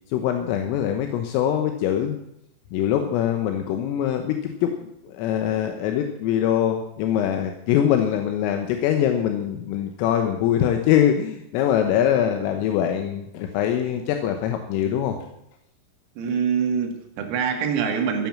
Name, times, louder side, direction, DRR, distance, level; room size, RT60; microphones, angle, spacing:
voice 1, 0.1-2.2 2.7-4.8 5.0-15.2, left 10 dB, 80° left, 5 dB, 3.6 m, -23 dB
voice 2, 16.2-18.3, right 7 dB, 85° right, 3 dB, 4.7 m, -24 dB
15.0 x 9.1 x 7.6 m, 0.81 s
omnidirectional pair, 5.9 m